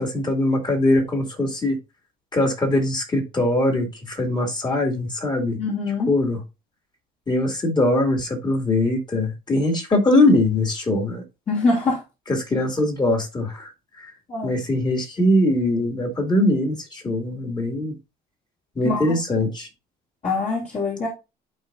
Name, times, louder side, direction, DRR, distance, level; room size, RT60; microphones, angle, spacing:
voice 1, 0.0-1.8 2.3-5.6 6.1-6.4 7.3-11.2 12.3-13.7 14.4-17.9 18.8-19.7, left 1 dB, 25° left, 3 dB, 2.6 m, -21 dB
voice 2, 5.5-6.1 11.5-12.0 14.3-14.5 18.8-19.0 19.4-19.5 20.2-21.1, left 3 dB, 40° left, -6 dB, 3.1 m, -24 dB
11.0 x 4.4 x 2.7 m, 0.26 s
cardioid pair, 110°, 17 cm